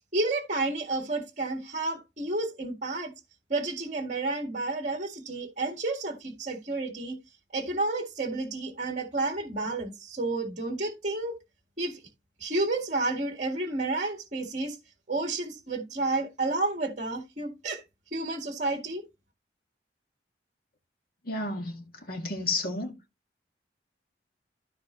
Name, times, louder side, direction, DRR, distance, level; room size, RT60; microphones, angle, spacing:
voice 1, 0.1-3.1 3.5-7.2 7.5-11.3 11.8-12.0 12.4-14.8 15.1-17.8 18.1-19.0, right 2 dB, 45° right, 1.8 m, -31 dB
voice 2, 21.3-22.9, left 2 dB, 55° left, 2.1 m, -32 dB
14.0 x 5.0 x 3.1 m
head